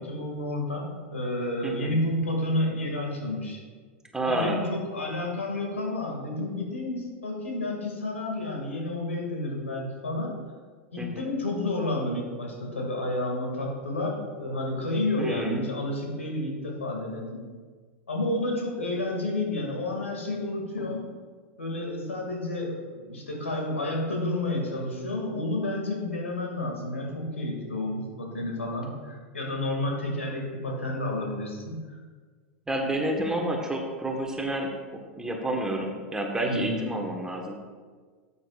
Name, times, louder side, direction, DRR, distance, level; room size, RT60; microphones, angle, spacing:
voice 1, 0.0-3.6 4.2-10.3 10.9-17.4 18.1-21.1 21.6-32.0 36.4-36.9, left 1 dB, 85° left, 0 dB, 2.2 m, -30 dB
voice 2, 4.1-4.6 11.0-11.2 15.2-15.6 32.7-34.7 35.2-37.5, right 1 dB, 10° right, 1 dB, 1.4 m, -29 dB
12.5 x 8.3 x 2.5 m, 1.5 s
hypercardioid pair, 90°, 7 cm